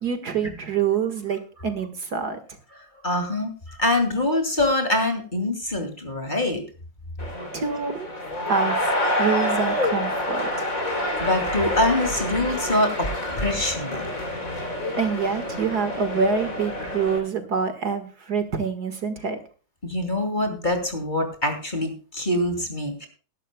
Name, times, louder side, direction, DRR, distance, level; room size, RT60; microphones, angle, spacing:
voice 1, 0.0-2.4 7.5-8.1 8.5-10.7 15.0-19.4, right 6 dB, 55° right, 9 dB, 2.1 m, -26 dB
voice 2, 3.0-6.6 11.2-14.1 19.8-23.1, left 1 dB, 25° left, 6 dB, 2.7 m, -24 dB
sound 1, 7.2-17.2, left 1 dB, 45° left, 3.9 m, -27 dB
20.5 x 11.5 x 2.2 m, 0.37 s
omnidirectional pair, 2.0 m